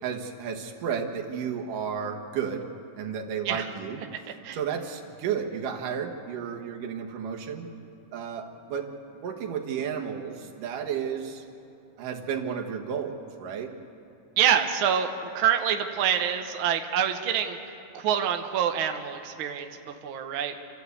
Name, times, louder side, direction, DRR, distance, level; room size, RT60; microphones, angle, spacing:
voice 1, 0.0-2.7 3.0-4.0 4.5-7.7 8.1-8.9 9.2-11.4 12.0-13.7, right 7 dB, 80° right, 2 dB, 3.0 m, -32 dB
voice 2, 14.4-17.6 17.9-20.6, right 9 dB, 60° right, 5 dB, 1.4 m, -26 dB
28.5 x 13.5 x 8.3 m, 2.7 s
omnidirectional pair, 3.7 m